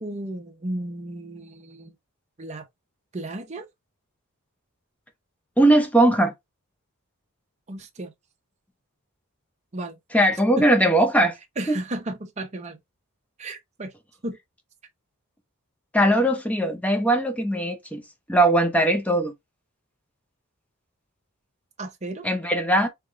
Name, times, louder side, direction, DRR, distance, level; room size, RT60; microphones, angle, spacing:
voice 1, 0.0-1.9 2.4-2.6 3.1-3.7 7.7-8.1 9.7-10.0 10.6-10.7 11.6-12.8 13.4-13.9 14.2-14.4 21.8-22.3, right 1 dB, 30° right, 0.7 m, -33 dB
voice 2, 5.6-6.3 10.1-11.3 11.7-11.8 15.9-18.0 18.3-19.3 22.2-22.9, right 1 dB, 5° left, 0.7 m, -20 dB
3.6 x 3.5 x 3.2 m
head